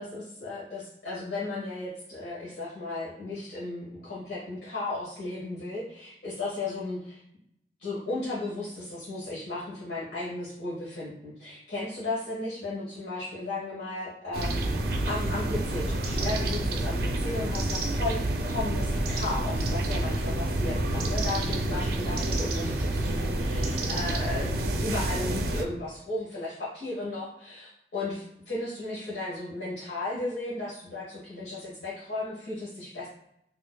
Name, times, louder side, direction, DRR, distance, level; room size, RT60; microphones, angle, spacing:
voice 1, 0.0-7.0 7.8-14.7 15.0-33.1, left 2 dB, 75° left, -8 dB, 1.3 m, -35 dB
sound 1, 14.3-25.6, right 1 dB, 60° right, 0.4 m, -28 dB
4.3 x 2.8 x 2.2 m, 0.78 s
head